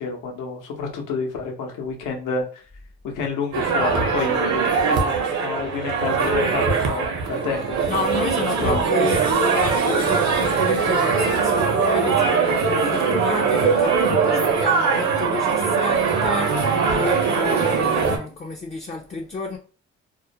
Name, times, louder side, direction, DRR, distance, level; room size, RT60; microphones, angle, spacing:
voice 1, 0.0-2.4 3.0-8.3 8.6-8.8, left 4 dB, 85° left, 0.7 m, -29 dB
sound 1, 3.5-18.2, right 5 dB, 70° right, 0.7 m, -21 dB
voice 2, 7.9-19.6, left 3 dB, 25° left, 0.3 m, -30 dB
2.3 x 2.1 x 2.7 m
cardioid pair, 90°, 30 cm